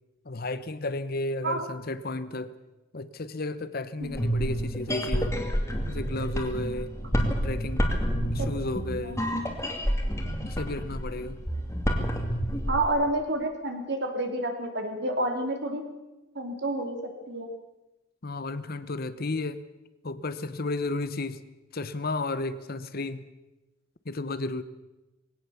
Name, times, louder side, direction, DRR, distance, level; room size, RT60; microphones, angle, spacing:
voice 1, 0.2-2.5 2.9-5.5 5.9-6.9 7.4-7.9 8.3-9.2 10.4-11.4 18.2-19.6 20.0-21.4 21.7-23.3 24.0-24.6, left 2 dB, 50° left, 13 dB, 1.0 m, -33 dB
sound 1, 4.0-12.8, equal, 15° left, 2.6 m, -29 dB
voice 2, 4.0-4.4 8.4-8.5 9.0-9.2 12.7-15.8 16.3-17.5, right 1 dB, 55° right, 4 dB, 3.2 m, -29 dB
21.0 x 17.5 x 7.2 m, 1.0 s
head